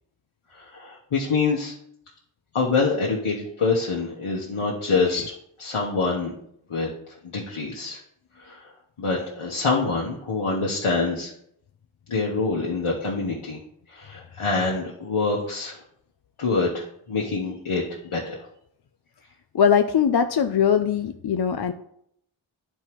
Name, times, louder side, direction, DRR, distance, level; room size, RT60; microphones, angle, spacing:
voice 1, 0.5-1.7 2.5-5.2 5.6-6.3 6.7-6.9 7.2-8.0 8.4-8.7 9.0-11.3 12.1-13.6 13.9-15.8 16.4-18.4, left 4 dB, 75° left, -3 dB, 1.1 m, -25 dB
voice 2, 19.5-21.7, left 7 dB, 55° left, 8 dB, 0.5 m, -21 dB
11.5 x 4.5 x 3.0 m, 0.72 s
wide cardioid pair, 60°, 50 cm